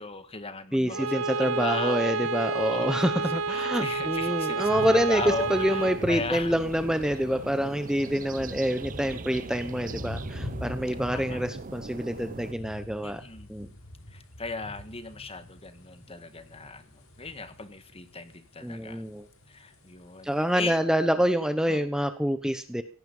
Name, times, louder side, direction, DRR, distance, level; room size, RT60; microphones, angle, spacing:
voice 1, 0.0-2.1 2.5-6.6 11.1-11.4 13.0-13.5 14.1-19.0 19.5-20.9 21.7-21.8, left 3 dB, 30° left, 11 dB, 1.8 m, -37 dB
voice 2, 0.7-5.2 5.5-13.2 13.5-13.7 18.6-19.3 20.2-22.8, equal, 5° right, 9 dB, 1.0 m, -27 dB
Bowed string instrument, 0.9-6.1, right 4 dB, 80° right, 1.3 m, -30 dB
sound 1, 2.6-20.8, left 1 dB, 80° left, 6.2 m, -44 dB
sound 2, 5.1-12.5, right 3 dB, 40° right, 0.8 m, -41 dB
17.5 x 14.5 x 5.6 m, 0.40 s
head